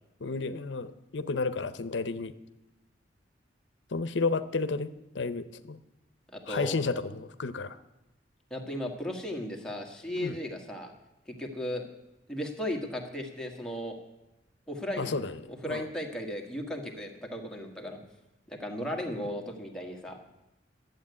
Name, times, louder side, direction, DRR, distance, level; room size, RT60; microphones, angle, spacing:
voice 1, 0.2-2.3 3.9-5.8 6.5-7.8 10.2-10.4 15.0-15.3 15.7-15.8, left 4 dB, 80° left, 13 dB, 0.7 m, -32 dB
voice 2, 6.3-6.7 8.5-10.9 11.3-11.9 12.3-14.0 14.7-15.2 15.5-18.0 18.5-20.3, equal, 5° left, 1 dB, 1.5 m, -36 dB
11.5 x 8.0 x 9.4 m, 0.97 s
head